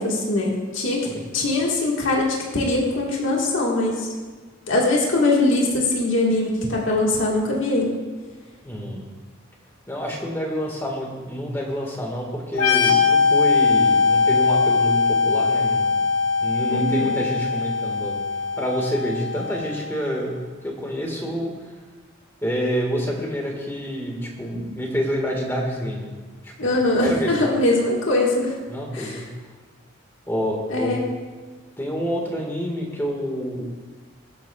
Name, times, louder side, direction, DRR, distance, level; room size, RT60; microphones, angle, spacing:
voice 1, 0.0-4.1 4.7-7.9 16.7-17.1 26.6-28.6 28.9-29.2 30.7-31.0, left 2 dB, 65° left, -2 dB, 1.7 m, -22 dB
voice 2, 8.6-9.1 9.9-16.0 16.4-18.2 18.6-20.3 20.6-21.5 22.4-26.1 26.4-26.7 27.0-27.4 28.7-29.2 30.3-31.0 31.8-33.6, equal, 10° left, -1 dB, 1.7 m, -28 dB
sound 1, 12.5-20.0, left 5 dB, 80° left, 1.7 m, -21 dB
22.5 x 8.3 x 2.4 m, 1.4 s
head